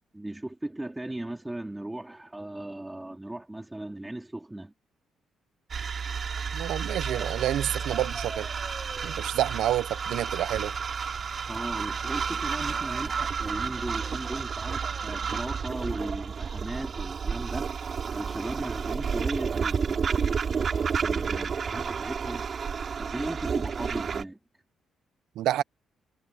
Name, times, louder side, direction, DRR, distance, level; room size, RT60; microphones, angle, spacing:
voice 1, 0.1-4.7 11.5-17.7 18.1-20.4 21.0-22.4 23.0-24.4, right 1 dB, 10° right, 3.8 m, -37 dB
sound 1, 5.7-24.2, right 6 dB, 45° right, 5.6 m, -31 dB
voice 2, 6.5-8.5 9.0-10.7 25.4-25.6, right 13 dB, 85° right, 0.8 m, -28 dB
sound 2, 6.9-15.4, right 4 dB, 30° right, 5.9 m, -47 dB
cardioid pair, 90°, 0 cm